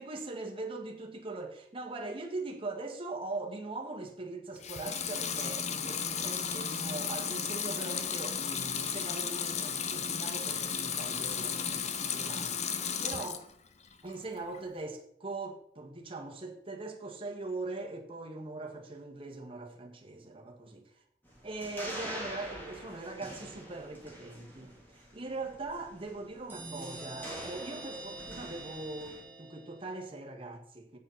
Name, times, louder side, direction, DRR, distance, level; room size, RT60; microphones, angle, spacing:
voice 1, 0.0-13.4 14.0-20.8 21.4-31.0, right 2 dB, 30° right, 1.6 m, -41 dB
Water tap faucet / Sink (filling or washing) / Liquid, 4.6-13.5 13.9-14.6, left 7 dB, 40° left, 0.8 m, -34 dB
sound 1, 21.2-29.2, equal, 10° left, 3.3 m, -46 dB
sound 2, 26.5-30.0, right 2 dB, 10° right, 2.7 m, -45 dB
8.2 x 6.5 x 5.7 m
head